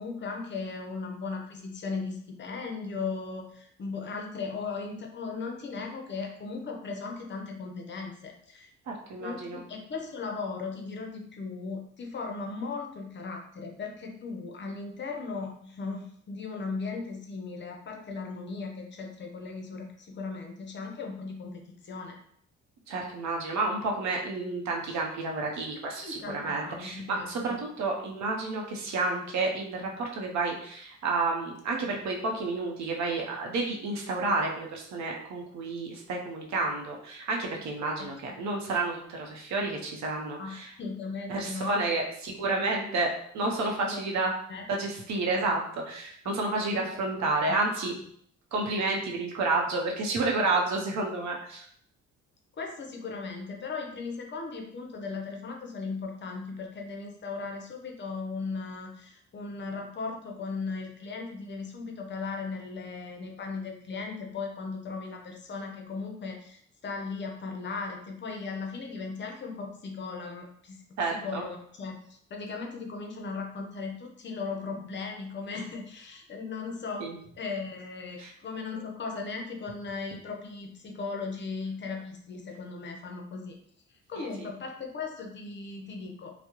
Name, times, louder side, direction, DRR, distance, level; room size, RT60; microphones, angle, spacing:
voice 1, 0.0-8.7 9.2-22.2 26.0-27.6 38.0-38.4 40.4-41.8 43.4-43.5 43.8-44.0 44.5-44.7 46.2-46.8 47.5-47.6 52.6-83.6 84.1-86.3, left 4 dB, 40° left, 1 dB, 0.5 m, -37 dB
voice 2, 8.9-9.6 22.9-40.7 41.3-44.3 44.7-47.9 48.5-51.7 71.0-71.4 77.0-77.2 78.2-78.3 84.1-84.5, right 3 dB, 65° right, 0 dB, 0.7 m, -30 dB
2.2 x 2.0 x 2.9 m, 0.65 s
cardioid pair, 90°, 30 cm